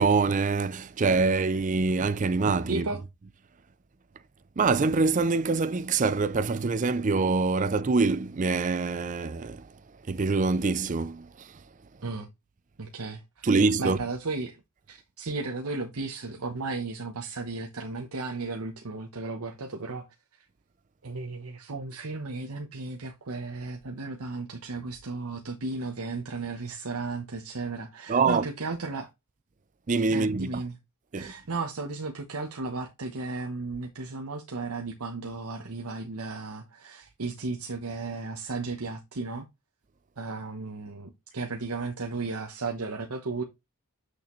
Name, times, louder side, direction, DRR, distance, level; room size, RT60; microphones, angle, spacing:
voice 1, 0.0-2.9 4.6-9.7 10.1-11.5 13.4-14.0 28.1-28.5 29.9-30.6 31.1-31.3, right 4 dB, 35° right, 0.4 m, -25 dB
voice 2, 2.7-3.0 12.0-12.3 12.8-14.6 14.9-20.1 21.0-29.1 30.1-30.8 31.1-39.4 40.2-43.4, right 3 dB, 80° right, 1.0 m, -35 dB
8.3 x 6.5 x 3.1 m
head